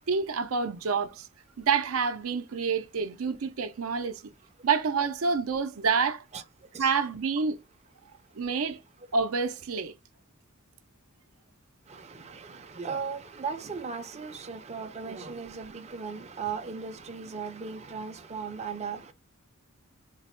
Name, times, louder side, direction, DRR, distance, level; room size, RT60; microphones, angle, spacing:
voice 1, 0.1-1.3 1.6-4.2 4.6-6.2 6.8-7.6 8.4-8.8 9.1-9.9, right 5 dB, 80° right, 0.5 m, -28 dB
voice 2, 11.9-19.1, right 5 dB, 30° right, 0.5 m, -37 dB
4.0 x 2.0 x 4.3 m
head